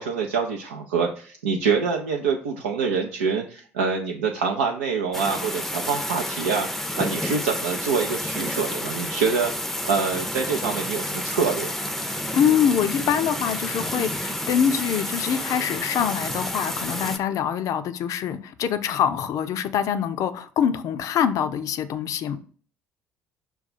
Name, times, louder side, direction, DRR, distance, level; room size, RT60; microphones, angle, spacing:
voice 1, 0.0-6.7 7.0-9.5 9.8-11.9, right 5 dB, 80° right, 1 dB, 0.5 m, -25 dB
sound 1, 5.1-17.2, left 1 dB, 5° left, 0.6 m, -30 dB
voice 2, 12.3-22.4, left 8 dB, 55° left, 11 dB, 0.5 m, -24 dB
5.5 x 2.3 x 4.1 m, 0.44 s
hypercardioid pair, 55°, 7 cm